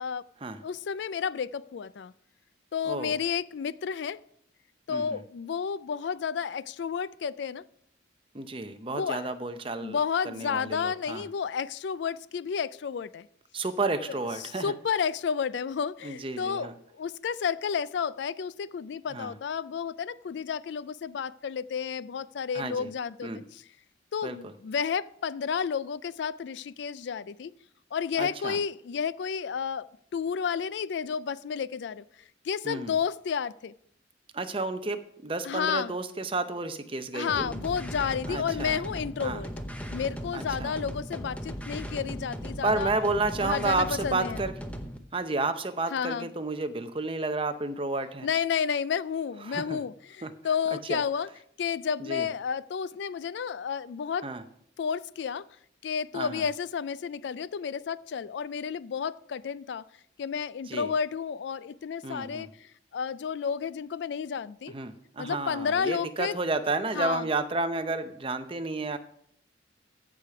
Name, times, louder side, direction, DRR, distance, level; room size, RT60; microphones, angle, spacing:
voice 1, 0.6-2.1 2.7-4.2 4.9-7.6 8.9-9.2 9.8-13.3 14.6-23.6 24.1-27.5 27.9-32.0 32.4-33.7 35.4-35.9 37.1-39.5 39.9-42.9 43.4-44.4 45.9-46.3 48.2-51.3 51.6-54.3 54.8-55.5 55.8-59.8 60.2-64.7 65.2-66.4 66.9-67.3, left 6 dB, 65° left, 0.3 m, -31 dB
voice 2, 4.9-5.2 8.3-10.0 10.2-11.3 13.5-14.7 16.0-16.7 19.1-19.3 22.5-22.9 23.2-23.4 24.2-24.5 28.2-28.6 32.6-32.9 34.3-37.5 38.3-38.8 39.2-39.4 40.3-40.8 42.6-44.5 45.1-48.3 49.5-49.8 50.2-50.3 50.9-51.0 52.0-52.3 54.2-54.4 56.1-56.4 60.7-60.9 62.0-62.5 64.7-69.0, right 3 dB, 30° right, 0.7 m, -31 dB
sound 1, 37.3-45.0, equal, 5° left, 0.8 m, -38 dB
15.0 x 5.0 x 5.8 m
head